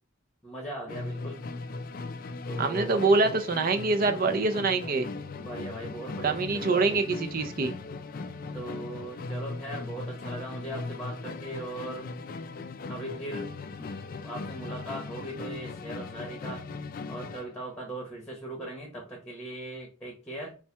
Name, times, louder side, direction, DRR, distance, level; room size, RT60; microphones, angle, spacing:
voice 1, 0.4-1.4 2.4-3.1 4.1-4.4 5.3-7.0 8.5-12.1 12.9-13.5 13.8-13.9 14.2-16.6 17.1-20.5, right 1 dB, 5° left, 0 dB, 1.0 m, -39 dB
Musical instrument, 0.9-17.6, left 3 dB, 45° left, 0.3 m, -38 dB
voice 2, 2.6-5.1 6.2-7.7, right 3 dB, 45° right, 7 dB, 0.4 m, -25 dB
5.6 x 2.2 x 3.4 m, 0.36 s
head